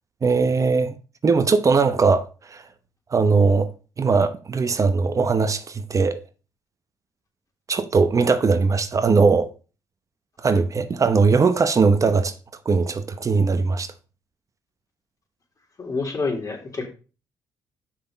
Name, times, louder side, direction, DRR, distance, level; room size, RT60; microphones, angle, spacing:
voice 1, 0.2-0.9 1.2-2.6 3.1-3.7 4.0-6.2 7.7-9.5 10.4-12.3 12.6-13.9, right 4 dB, 40° right, 1.0 m, -20 dB
voice 2, 15.8-16.8, left 3 dB, 45° left, 3.6 m, -27 dB
6.8 x 6.0 x 5.2 m
supercardioid pair, 55°, 8 cm